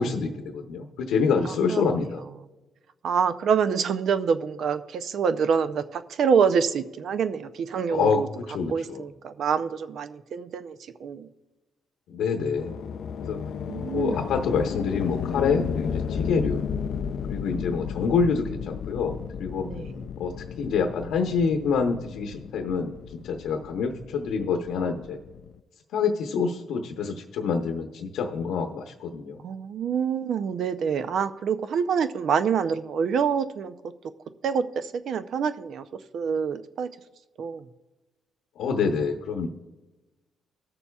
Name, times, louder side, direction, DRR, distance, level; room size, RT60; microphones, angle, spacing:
voice 1, 0.0-2.2 7.9-8.2 8.5-9.0 12.1-12.8 13.2-13.4 13.9-16.6 17.3-19.7 20.2-22.9 23.2-25.2 25.9-29.4 38.6-39.5, left 5 dB, 85° left, 3 dB, 0.9 m, -26 dB
voice 2, 1.4-1.9 3.0-8.3 8.7-11.3 13.7-14.2 19.6-20.0 29.4-33.9 34.4-36.9 37.4-37.7, right 6 dB, 65° right, 11 dB, 0.5 m, -26 dB
sound 1, 12.6-25.6, left 7 dB, 65° left, 0.4 m, -33 dB
20.0 x 6.9 x 2.3 m, 1.1 s
cardioid pair, 90°, 0 cm